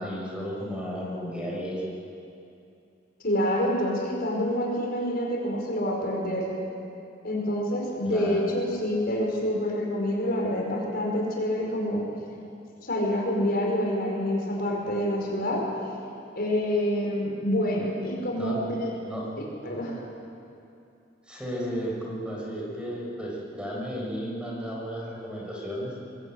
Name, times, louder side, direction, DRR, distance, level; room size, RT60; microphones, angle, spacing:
voice 1, 0.0-1.8 8.0-8.5 18.4-18.6 19.1-19.3 21.3-26.0, equal, 5° right, -4 dB, 5.4 m, -33 dB
voice 2, 3.2-6.5 7.2-12.1 12.8-15.6 16.3-18.9 19.4-20.0, left 1 dB, 55° left, -1 dB, 5.2 m, -27 dB
22.5 x 20.5 x 8.7 m, 2.6 s
head